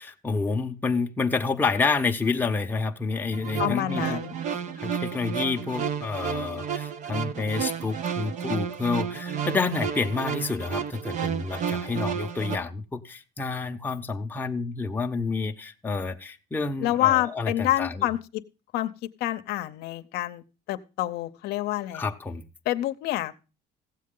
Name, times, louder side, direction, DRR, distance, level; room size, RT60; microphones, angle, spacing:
voice 1, 0.0-4.2 4.8-18.1 21.9-22.4, left 4 dB, 10° left, 0.7 m, -29 dB
sound 1, 3.3-12.6, right 8 dB, 45° right, 0.6 m, -31 dB
voice 2, 3.6-4.3 16.8-18.4 18.7-18.9 19.2-22.1 22.7-23.3, left 15 dB, 70° left, 0.7 m, -27 dB
15.5 x 7.6 x 3.7 m
cardioid pair, 140°, 17 cm